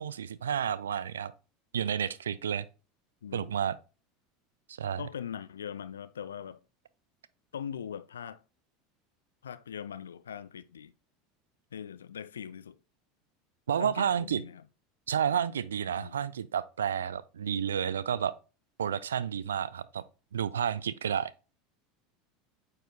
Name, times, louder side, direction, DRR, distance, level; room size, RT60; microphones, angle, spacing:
voice 1, 0.0-1.3 1.7-2.7 3.3-3.8 4.7-5.0 13.7-14.4 15.1-18.3 18.8-20.0 20.3-21.3, right 8 dB, 70° right, 0.4 m, -30 dB
voice 2, 3.2-3.6 5.0-6.6 7.5-8.4 9.4-10.9 11.7-12.8 13.8-14.6 16.0-16.2, left 8 dB, 75° left, 0.4 m, -41 dB
8.9 x 4.9 x 2.2 m
figure-of-eight pair, 75°, 0 cm